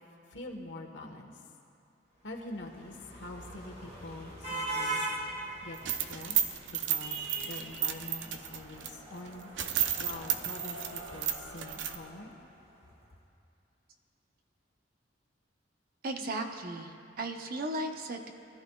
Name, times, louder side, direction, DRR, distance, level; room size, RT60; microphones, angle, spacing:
voice 1, 0.3-1.4 2.2-5.0 5.3-12.3, left 2 dB, 75° left, 2 dB, 1.4 m, -45 dB
sound 1, 2.3-12.6, right 2 dB, 35° right, 2.4 m, -41 dB
sound 2, 5.7-8.9 9.3-9.4 9.6-12.0, right 10 dB, 85° right, 0.6 m, -32 dB
voice 2, 16.0-18.3, right 2 dB, 50° right, 4 dB, 0.9 m, -36 dB
22.5 x 13.5 x 2.4 m, 2.5 s
head